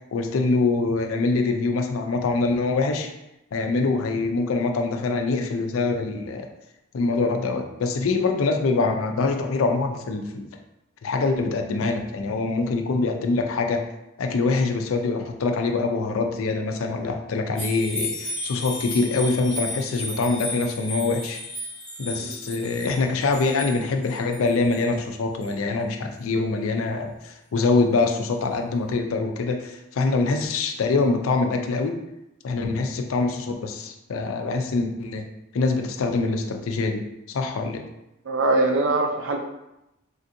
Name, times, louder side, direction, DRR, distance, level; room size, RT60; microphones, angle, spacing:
voice 1, 0.1-3.1 3.5-6.5 6.9-10.5 11.0-13.9 14.2-21.4 22.0-32.0 32.4-35.3 35.5-37.8, left 3 dB, 75° left, 4 dB, 0.4 m, -24 dB
sound 1, 17.5-24.9 25.4-25.5, left 1 dB, 5° left, 0.6 m, -34 dB
voice 2, 38.3-39.4, right 2 dB, 60° right, 3 dB, 0.4 m, -22 dB
3.4 x 2.5 x 2.6 m, 0.89 s
head